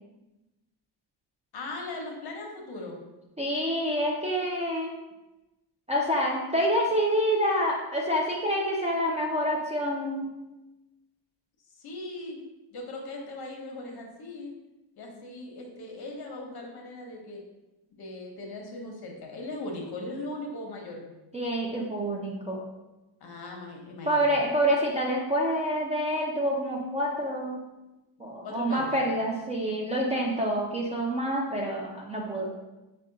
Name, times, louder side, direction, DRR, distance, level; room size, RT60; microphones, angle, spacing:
voice 1, 1.5-3.0 11.7-12.4 12.7-14.5 14.9-17.5 17.9-21.1 23.2-24.2 28.4-29.0, left 2 dB, 55° left, 1 dB, 0.9 m, -39 dB
voice 2, 3.4-4.9 5.9-10.3 21.3-22.6 24.1-27.6 28.2-32.6, equal, 15° right, -3 dB, 0.3 m, -27 dB
4.9 x 2.3 x 3.8 m, 1.0 s
cardioid pair, 155°, 44 cm